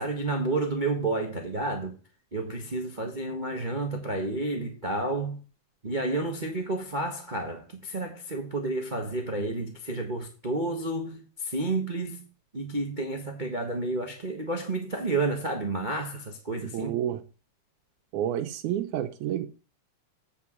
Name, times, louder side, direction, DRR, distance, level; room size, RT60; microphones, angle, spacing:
voice 1, 0.0-1.9 2.3-5.4 5.8-12.2 12.5-16.9, right 2 dB, 55° right, 0.5 m, -30 dB
voice 2, 16.6-17.2 18.1-19.5, right 11 dB, 85° right, 2.2 m, -30 dB
8.4 x 5.2 x 7.3 m
omnidirectional pair, 3.4 m